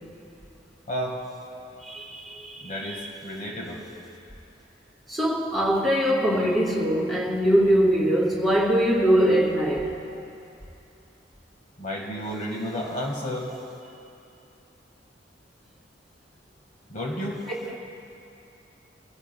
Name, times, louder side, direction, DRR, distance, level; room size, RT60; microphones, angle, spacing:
voice 1, 0.9-1.2 2.6-3.8 11.8-13.6 16.9-17.4, equal, 45° left, 1.6 m, -32 dB
voice 2, 1.5-3.1 5.1-9.9 17.6-17.8, equal, ahead, 2.3 m, -23 dB
23.5 x 16.0 x 2.2 m
head